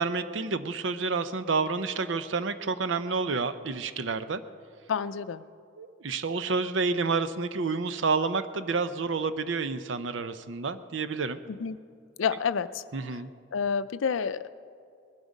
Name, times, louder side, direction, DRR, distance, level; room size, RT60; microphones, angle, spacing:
voice 1, 0.0-4.4 5.8-11.4 12.9-13.3, right 4 dB, 75° right, 12 dB, 0.6 m, -29 dB
voice 2, 4.9-5.4 11.5-11.8 12.2-12.8 13.5-14.5, left 6 dB, 85° left, 15 dB, 0.5 m, -29 dB
20.0 x 12.0 x 5.2 m, 2.3 s
head